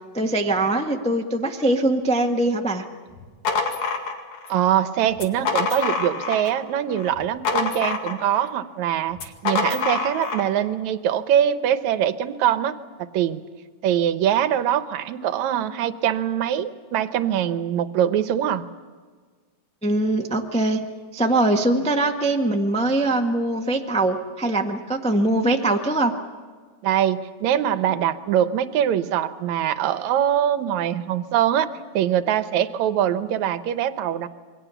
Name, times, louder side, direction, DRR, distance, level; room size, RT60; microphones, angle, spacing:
voice 1, 0.1-2.8 19.8-20.8 21.1-26.1, right 2 dB, 10° left, 2 dB, 0.3 m, -22 dB
sound 1, 3.1-4.6 5.1-6.6 6.9-8.5 9.1-10.5, left 4 dB, 75° left, 3.4 m, -26 dB
voice 2, 4.5-13.4 13.8-18.7 26.8-31.7 31.9-34.3, right 10 dB, 80° right, 11 dB, 2.2 m, -23 dB
27.5 x 23.0 x 7.0 m, 1.5 s
omnidirectional pair, 3.3 m